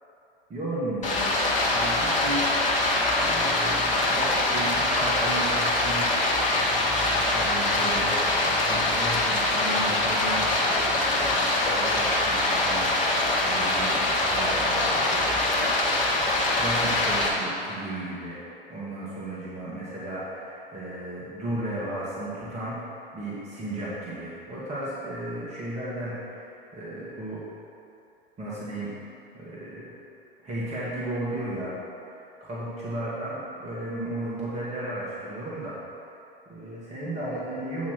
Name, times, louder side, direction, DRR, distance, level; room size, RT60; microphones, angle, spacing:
voice 1, 0.5-6.1 7.3-8.1 8.6-15.6 16.5-18.4 18.7-22.8 23.1-27.4 28.4-29.0 29.3-29.9 30.4-31.7 32.1-35.8 36.5-37.9, right 1 dB, 25° right, -8 dB, 1.6 m, -34 dB
Stream, 1.0-17.3, left 2 dB, 25° left, 1.4 m, -24 dB
8.5 x 3.0 x 6.3 m, 2.7 s
figure-of-eight pair, 85°, 29 cm